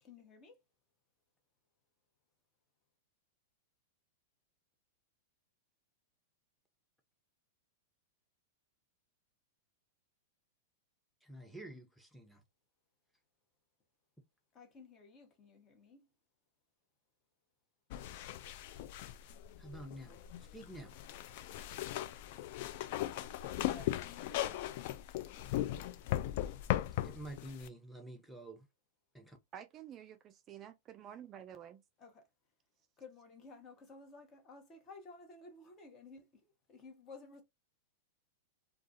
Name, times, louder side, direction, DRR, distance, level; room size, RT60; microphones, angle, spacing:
voice 1, 0.0-0.6 14.5-16.1 23.7-24.9 32.0-32.3 33.0-37.4, left 3 dB, 30° left, 0.9 m, -55 dB
voice 2, 11.2-12.4 19.1-19.2 19.6-21.0 27.0-28.7 29.1-29.4, right 1 dB, ahead, 0.8 m, -49 dB
sound 1, 17.9-27.7, left 14 dB, 55° left, 0.3 m, -38 dB
voice 3, 29.5-31.8, right 10 dB, 35° right, 0.3 m, -50 dB
2.3 x 2.3 x 2.6 m
hypercardioid pair, 100°, 0 cm